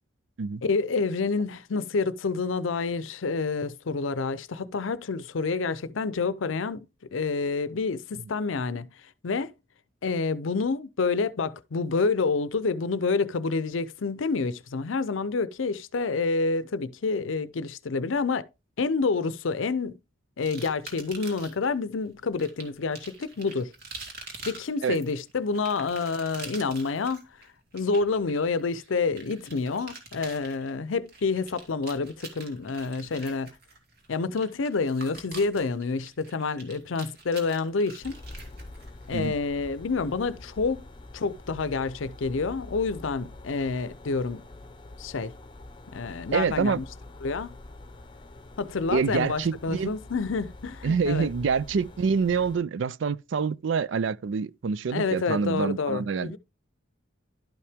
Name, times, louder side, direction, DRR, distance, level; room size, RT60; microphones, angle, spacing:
voice 1, 0.6-6.9 7.1-8.9 9.2-9.5 10.0-18.5 18.8-20.0 20.4-23.7 24.5-27.2 27.7-33.5 34.1-38.2 39.1-40.8 41.1-44.4 45.0-45.3 45.9-46.8 47.2-47.6 48.6-51.3 54.9-56.4, left 4 dB, 85° left, 0.6 m, -28 dB
sound 1, 20.4-21.7 22.4-39.3, right 3 dB, 50° right, 2.4 m, -45 dB
sound 2, 38.0-52.6, left 2 dB, 25° left, 0.8 m, -45 dB
voice 2, 46.3-46.8 48.9-49.9 50.8-56.3, right 5 dB, 70° right, 0.4 m, -26 dB
11.5 x 5.7 x 3.5 m
head